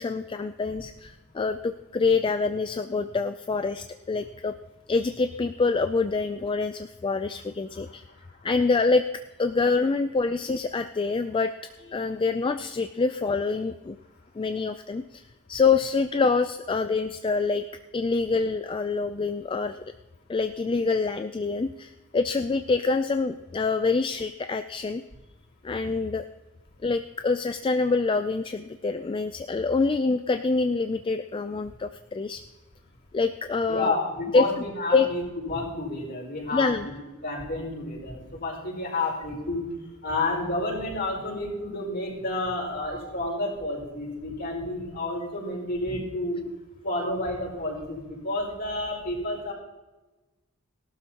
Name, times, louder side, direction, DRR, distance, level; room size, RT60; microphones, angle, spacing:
voice 1, 0.0-4.5 4.9-8.0 8.4-9.0 9.4-11.5 11.8-14.0 14.4-15.2 15.5-17.6 17.9-19.8 20.3-25.0 25.6-26.3 26.8-32.4 33.1-34.0 34.3-34.4 34.9-35.1 36.5-36.9, left 4 dB, 20° left, 9 dB, 0.3 m, -26 dB
voice 2, 33.7-37.0 37.2-39.6 40.0-46.4 46.8-49.5, left 2 dB, 50° left, -2 dB, 5.3 m, -30 dB
18.5 x 12.0 x 2.9 m, 1.2 s
head